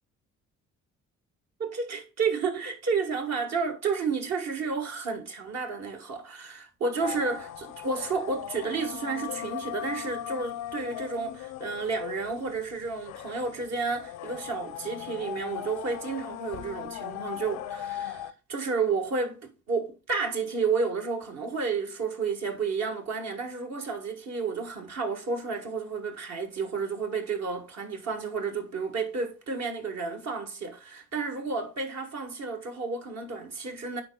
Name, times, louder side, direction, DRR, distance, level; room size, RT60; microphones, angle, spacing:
voice 1, 1.6-34.0, right 4 dB, 60° right, 1.5 m, -31 dB
sound 1, 7.0-18.3, left 12 dB, 90° left, 0.5 m, -39 dB
9.6 x 4.3 x 2.3 m
cardioid pair, 90°, 30 cm